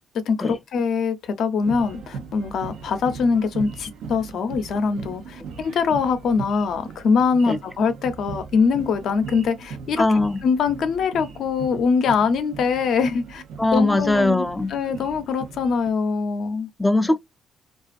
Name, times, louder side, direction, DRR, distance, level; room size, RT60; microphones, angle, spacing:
voice 1, 0.3-10.0 10.4-13.4 13.7-16.7, left 5 dB, 70° left, 0.5 m, -23 dB
sound 1, 1.6-15.9, right 5 dB, 85° right, 0.5 m, -39 dB
voice 2, 10.0-10.4 13.6-14.7 16.8-17.2, left 2 dB, 10° left, 0.3 m, -20 dB
2.4 x 2.4 x 2.3 m
cardioid pair, 90°, 0 cm